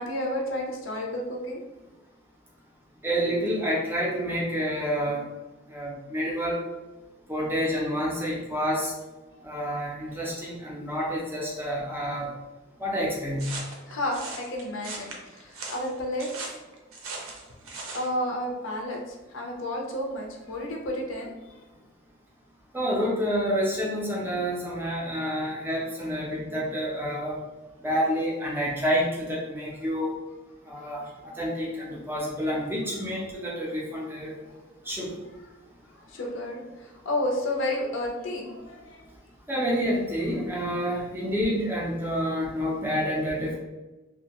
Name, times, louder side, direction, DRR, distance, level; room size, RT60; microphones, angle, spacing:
voice 1, 0.0-1.6 13.9-16.3 17.9-21.5 36.1-39.0, left 1 dB, 60° left, 0 dB, 0.5 m, -31 dB
voice 2, 3.0-5.3 5.7-6.6 7.3-8.9 9.4-12.3 12.8-13.6 22.7-27.4 27.8-30.1 30.7-31.0 31.4-34.3 34.9-35.2 39.5-43.6, equal, 10° right, -4 dB, 0.4 m, -28 dB
sound 1, 13.4-18.1, right 3 dB, 80° right, 0.5 m, -39 dB
2.7 x 2.1 x 2.9 m, 1.1 s
head